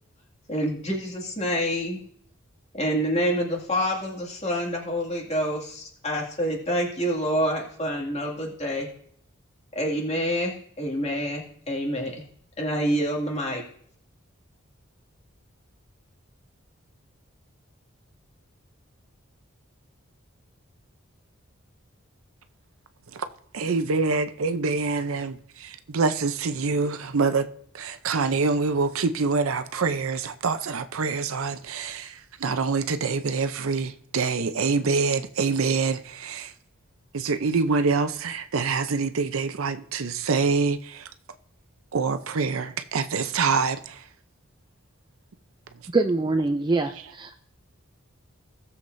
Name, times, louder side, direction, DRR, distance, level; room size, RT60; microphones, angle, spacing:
voice 1, 0.5-2.0 2.7-8.9 9.7-12.2 12.6-13.6, equal, 30° left, 2.2 m, -27 dB
voice 2, 23.5-27.5 27.7-32.1 32.4-36.5 37.1-41.0 41.9-43.9, right 4 dB, 80° right, 0.6 m, -25 dB
voice 3, 45.9-47.4, right 3 dB, 20° right, 0.4 m, -24 dB
17.5 x 7.2 x 2.6 m
head